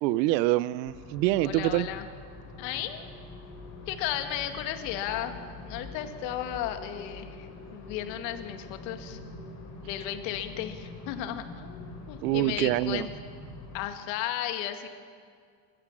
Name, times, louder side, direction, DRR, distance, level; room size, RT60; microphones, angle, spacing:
voice 1, 0.0-1.9 12.2-13.1, right 16 dB, 90° right, 20 dB, 0.7 m, -25 dB
sound 1, 0.8-13.8, left 2 dB, 30° left, 7.2 m, -44 dB
voice 2, 1.4-2.1 2.6-3.0 3.9-5.4 5.6-9.2 9.8-13.1 13.7-14.9, left 11 dB, 80° left, 7 dB, 2.1 m, -34 dB
26.5 x 14.5 x 7.4 m, 2.2 s
supercardioid pair, 130°, 50 cm